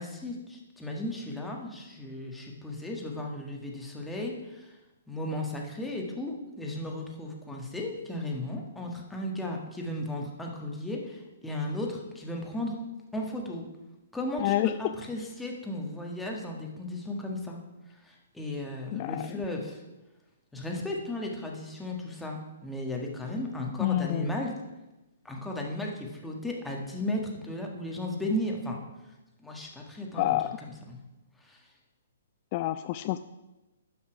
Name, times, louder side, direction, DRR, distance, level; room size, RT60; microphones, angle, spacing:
voice 1, 0.0-4.7 5.1-12.8 13.1-13.7 14.1-17.6 18.0-19.8 20.5-24.6 25.2-28.8 29.4-30.4 30.9-31.0 31.4-31.6, left 1 dB, 5° left, -1 dB, 1.6 m, -35 dB
voice 2, 14.4-14.7 18.9-19.4 23.8-24.3 30.1-30.6 32.5-33.2, left 15 dB, 40° left, 11 dB, 0.3 m, -28 dB
11.0 x 5.8 x 5.0 m, 1.0 s
figure-of-eight pair, 125°, 0 cm